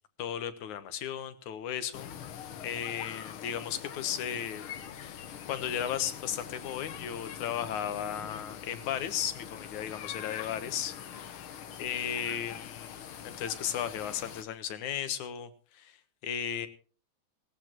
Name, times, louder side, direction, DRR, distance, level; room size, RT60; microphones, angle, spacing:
voice 1, 0.2-2.1 2.6-4.7 5.0-11.3 11.8-16.0 16.2-16.7, left 9 dB, 80° left, 11 dB, 2.6 m, -35 dB
sound 1, 1.9-14.4, left 9 dB, 60° left, 1.5 m, -44 dB
20.0 x 17.5 x 3.0 m, 0.36 s
omnidirectional pair, 3.4 m